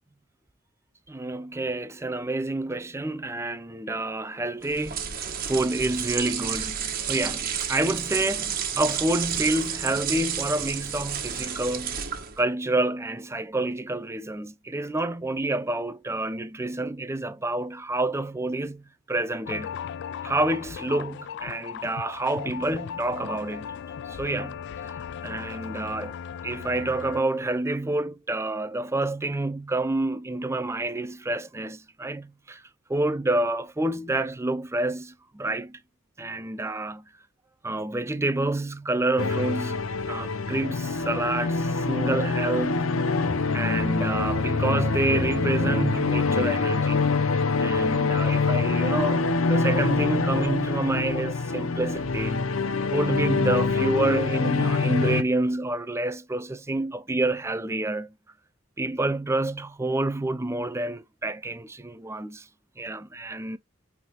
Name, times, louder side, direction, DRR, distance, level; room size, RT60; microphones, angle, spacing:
voice 1, 1.1-12.0 12.4-19.8 20.2-23.8 24.1-24.9 25.2-26.2 26.4-32.6 32.9-35.8 36.2-37.1 37.6-43.0 43.5-47.1 47.6-52.4 52.9-58.1 58.8-62.5 62.8-63.6, right 2 dB, 15° right, 0.5 m, -28 dB
sound 1, 4.6-12.4, right 8 dB, 45° right, 1.3 m, -31 dB
sound 2, 19.4-27.2, left 7 dB, 55° left, 0.3 m, -37 dB
sound 3, 39.2-55.2, left 4 dB, 80° left, 0.7 m, -25 dB
9.2 x 3.6 x 2.9 m
head